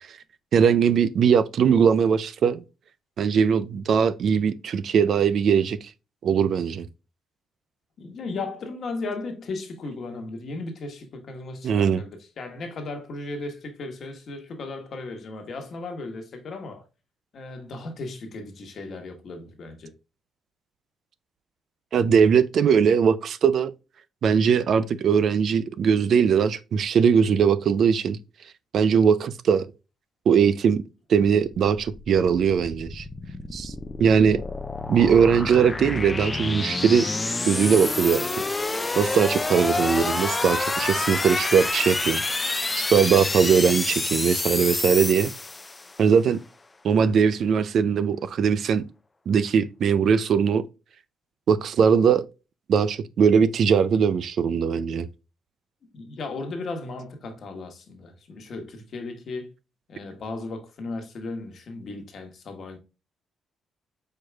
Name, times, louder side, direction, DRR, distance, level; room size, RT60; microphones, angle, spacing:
voice 1, 0.5-2.6 3.2-5.9 6.2-6.9 11.6-12.0 21.9-23.7 24.2-28.2 28.7-29.7 30.3-30.8 31.1-33.1 33.5-33.7 34.0-34.4 34.9-37.1 37.5-38.3 39.0-45.3 46.0-46.4 46.8-48.9 49.3-50.6 51.5-52.3 52.7-55.1, right 7 dB, 60° right, 0.4 m, -20 dB
voice 2, 8.0-16.8 17.3-19.9 55.9-59.5 59.9-62.8, left 3 dB, 55° left, 1.2 m, -36 dB
sound 1, 31.5-46.0, left 3 dB, 20° left, 0.5 m, -28 dB
4.7 x 4.5 x 2.3 m
cardioid pair, 90°, 0 cm